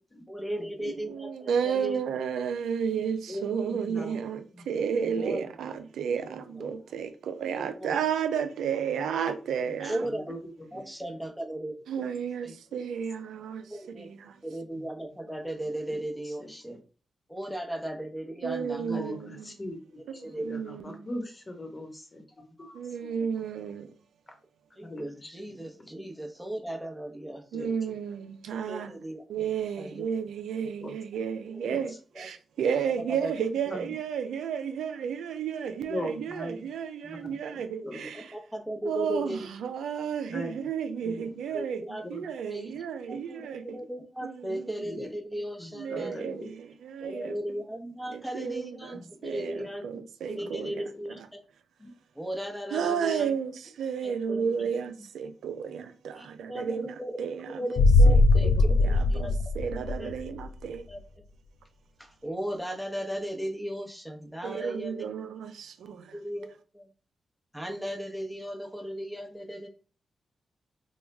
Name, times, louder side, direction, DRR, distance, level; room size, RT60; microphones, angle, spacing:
voice 1, 0.3-2.0 5.2-5.4 7.5-7.9 9.9-10.2 10.7-11.8 12.4-12.5 13.7-14.1 14.4-16.8 17.3-19.1 20.1-20.5 23.0-23.1 24.8-27.7 28.7-29.2 29.8-30.1 30.6-30.7 32.2-32.3 33.1-33.3 37.8-39.5 41.2-41.3 41.5-42.0 42.5-46.2 47.0-49.8 50.3-51.2 52.2-53.3 54.0-54.4 56.2-57.2 57.5-58.5 58.8-59.4 60.0-60.1 60.9-61.0 62.2-65.1 66.1-66.9 67.5-69.7, right 1 dB, ahead, 0.9 m, -36 dB
voice 2, 0.8-10.1 11.9-14.4 18.4-19.5 20.1-21.1 22.7-24.0 27.5-28.9 29.3-38.4 38.8-43.8 44.2-44.8 45.7-47.4 48.1-51.3 52.7-57.7 58.1-60.8 64.4-66.2, right 7 dB, 85° right, 0.3 m, -32 dB
voice 3, 3.3-4.2 4.5-4.6 5.1-5.2 6.6-6.7 9.7-10.8 12.0-12.1 12.7-12.8 15.7-16.8 18.8-22.2 22.6-22.8 24.8-25.3 25.8-25.9 27.5-27.7 30.8-30.9 31.6-31.8 33.7-33.8 35.9-36.7 37.0-37.6 37.8-38.2 40.3-40.6 41.0-41.5 42.0-42.2 44.8-45.1 45.6-46.5 48.9-49.7 50.4-50.5 50.9-51.0 51.8-51.9 54.4-54.5 58.3-58.6, left 1 dB, 35° left, 1.1 m, -41 dB
sound 1, 57.8-60.5 60.8-60.9, left 2 dB, 75° left, 0.3 m, -21 dB
3.0 x 2.2 x 3.4 m
supercardioid pair, 45°, 0 cm